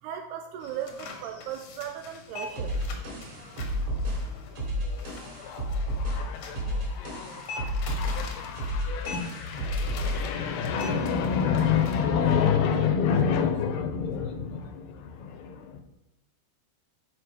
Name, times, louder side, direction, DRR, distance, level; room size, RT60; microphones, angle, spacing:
voice 1, 0.0-2.8, right 9 dB, 80° right, 6 dB, 2.5 m, -37 dB
sound 1, 0.6-11.9, left 3 dB, 60° left, 2.0 m, -43 dB
sound 2, 2.6-10.4, equal, 45° right, 3.9 m, -31 dB
voice 2, 4.8-15.8, left 7 dB, 75° left, 6 dB, 2.7 m, -28 dB
12.0 x 5.4 x 5.1 m, 0.92 s
omnidirectional pair, 5.0 m